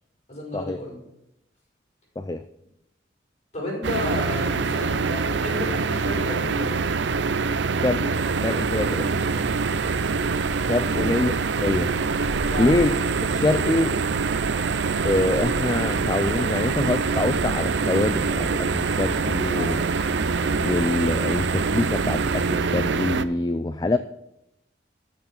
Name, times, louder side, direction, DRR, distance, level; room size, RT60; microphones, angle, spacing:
voice 1, 0.3-1.0 3.5-6.9 10.8-11.1 12.5-12.8 19.6-19.7, left 1 dB, 35° left, -3 dB, 5.5 m, -32 dB
sound 1, 3.8-23.3, right 4 dB, 75° right, 0.6 m, -25 dB
voice 2, 7.8-8.1 8.4-9.1 10.6-11.3 11.6-11.9 12.6-13.0 13.3-14.0 15.0-19.8 20.6-24.0, left 2 dB, 20° left, 11 dB, 0.4 m, -25 dB
sound 2, 8.1-22.6, right 3 dB, 40° right, 1.2 m, -35 dB
13.0 x 6.9 x 6.6 m, 0.83 s
head